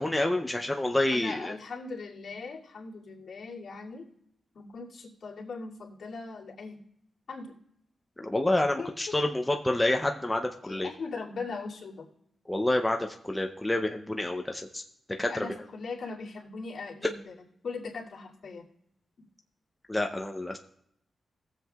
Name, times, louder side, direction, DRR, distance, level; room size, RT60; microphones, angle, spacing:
voice 1, 0.0-1.5 8.2-10.9 12.5-14.8 15.2-15.3 19.9-20.6, left 1 dB, 10° left, 3 dB, 0.5 m, -28 dB
voice 2, 1.1-4.1 4.5-6.8 7.3-7.6 8.8-9.2 10.6-12.1 15.3-17.3 17.6-18.7, left 4 dB, 60° left, -5 dB, 2.3 m, -39 dB
19.5 x 7.4 x 2.3 m, 0.74 s
wide cardioid pair, 160°, 0 cm